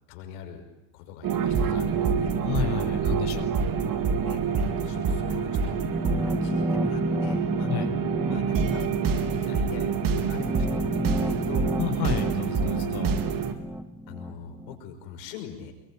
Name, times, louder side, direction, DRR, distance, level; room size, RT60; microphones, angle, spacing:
voice 1, 0.1-0.6 0.9-2.3 4.2-7.7 8.2-8.9 9.1-11.7 14.1-15.7, left 7 dB, 85° left, 5 dB, 6.0 m, -42 dB
sound 1, 1.2-13.5, right 6 dB, 40° right, 3.9 m, -27 dB
voice 2, 2.4-3.5 7.7-7.9 11.8-13.1, left 9 dB, 50° left, 4 dB, 6.4 m, -31 dB
sound 2, 5.8-14.8, equal, 5° right, 1.8 m, -32 dB
28.0 x 23.0 x 9.2 m, 0.94 s
supercardioid pair, 115°, 49 cm